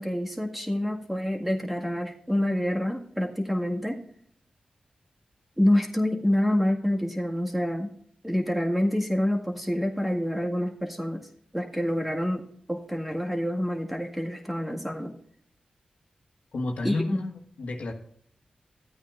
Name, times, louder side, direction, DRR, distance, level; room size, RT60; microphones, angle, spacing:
voice 1, 0.0-4.0 5.6-7.9 8.2-11.2 11.5-12.4 12.7-15.1 16.8-17.2, left 1 dB, 5° right, 1 dB, 1.8 m, -27 dB
voice 2, 16.5-17.9, left 2 dB, 75° left, 3 dB, 1.5 m, -31 dB
14.0 x 8.8 x 2.5 m, 0.62 s
cardioid pair, 55°, 2 cm